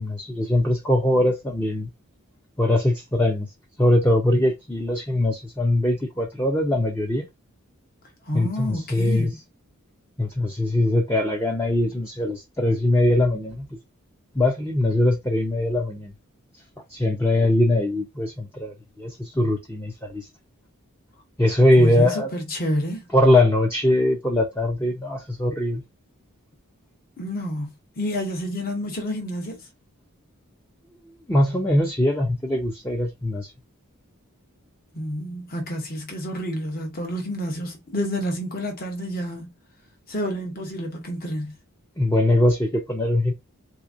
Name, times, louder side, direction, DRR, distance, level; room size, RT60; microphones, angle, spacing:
voice 1, 0.0-1.9 2.6-3.5 3.8-7.3 8.3-9.3 10.2-13.7 14.3-16.1 16.9-20.2 21.4-22.3 23.1-25.8 31.3-33.5 42.0-43.3, left 1 dB, 10° left, 0.5 m, -21 dB
voice 2, 8.3-9.4 21.7-23.0 27.2-27.7 28.0-29.6 34.9-39.5 40.1-41.5, equal, 40° left, 1.0 m, -29 dB
3.5 x 2.8 x 2.4 m
head